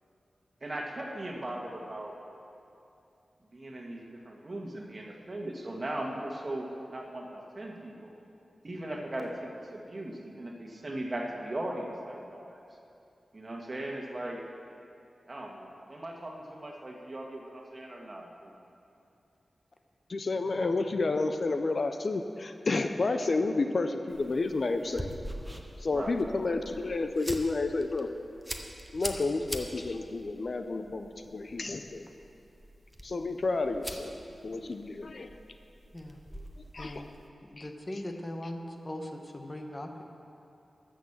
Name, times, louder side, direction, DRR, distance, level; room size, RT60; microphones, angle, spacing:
voice 1, 0.6-2.1 3.5-8.1 8.6-12.6 13.3-14.4 15.3-18.5 25.9-26.2, right 1 dB, 35° right, 0 dB, 1.6 m, -38 dB
voice 2, 20.1-25.1 25.8-28.1 28.9-32.1 33.0-34.2 34.4-35.3 36.7-37.0 37.6-37.7, left 3 dB, 55° left, 7 dB, 0.5 m, -30 dB
sound 1, 24.1-37.3, equal, 5° right, 1.0 m, -44 dB
voice 3, 36.8-37.1 37.4-40.0, left 1 dB, 30° left, 3 dB, 1.0 m, -40 dB
13.0 x 6.3 x 7.3 m, 2.7 s
wide cardioid pair, 90°, 0 cm